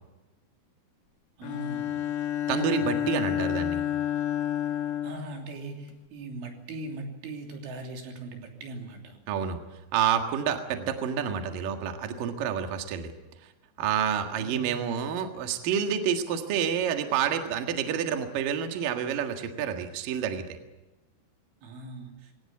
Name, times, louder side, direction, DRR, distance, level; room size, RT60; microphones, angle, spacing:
Bowed string instrument, 1.4-6.0, left 11 dB, 75° left, 2.0 m, -30 dB
voice 1, 1.4-2.0 5.0-9.2 14.4-14.9 21.6-22.3, right 2 dB, 85° right, 3 dB, 5.5 m, -40 dB
voice 2, 2.5-3.8 9.3-9.6 9.9-13.1 13.8-20.5, right 8 dB, 55° right, 5 dB, 2.9 m, -28 dB
22.5 x 18.5 x 8.5 m, 1.1 s
omnidirectional pair, 5.4 m